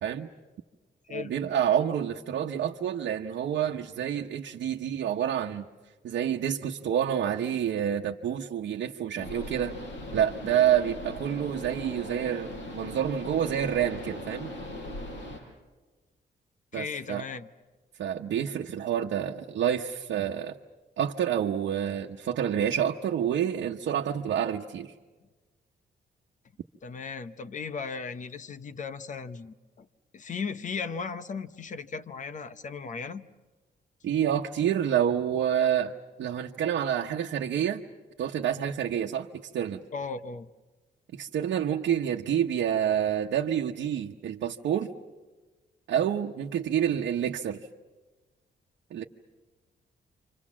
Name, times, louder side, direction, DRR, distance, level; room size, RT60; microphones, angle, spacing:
voice 1, 1.1-5.6 6.0-9.7 10.1-14.5 16.7-17.2 18.0-20.6 21.0-24.9 34.0-35.9 36.2-37.8 38.2-39.3 39.5-39.8 41.1-44.9 45.9-47.6 48.9-49.0, right 9 dB, 85° right, 0 dB, 1.0 m, -28 dB
sound 1, 9.2-15.4, left 1 dB, 90° left, 5.9 m, -39 dB
voice 2, 16.7-17.5 26.8-29.9 30.1-33.2 39.9-40.5, left 5 dB, 45° left, 12 dB, 0.9 m, -36 dB
29.5 x 26.0 x 7.4 m, 1.3 s
wide cardioid pair, 160°, 18 cm